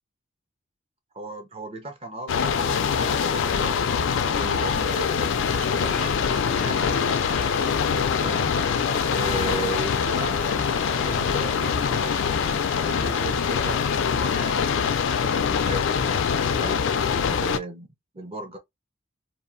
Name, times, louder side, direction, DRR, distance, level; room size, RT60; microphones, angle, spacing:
voice 1, 1.1-3.9 4.3-8.5 9.1-12.2 12.8-14.7 15.0-16.1 16.6-16.9 17.3-17.9 18.1-18.6, right 2 dB, 30° right, 0.6 m, -36 dB
sound 1, 2.3-17.6, left 6 dB, 75° left, 0.3 m, -24 dB
Domestic sounds home sounds, 5.6-14.3, left 3 dB, 10° left, 0.4 m, -40 dB
2.7 x 2.4 x 2.5 m
head